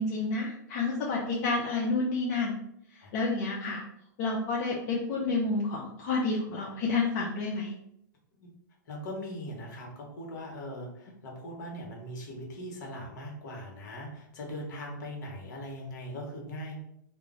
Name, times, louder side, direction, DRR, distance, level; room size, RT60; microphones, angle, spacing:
voice 1, 0.0-2.5 3.1-3.8 4.2-7.7, left 3 dB, 45° left, -3 dB, 0.5 m, -29 dB
voice 2, 8.9-16.8, equal, 65° left, -1 dB, 1.0 m, -40 dB
2.4 x 2.0 x 3.7 m, 0.74 s
hypercardioid pair, 140°, 11 cm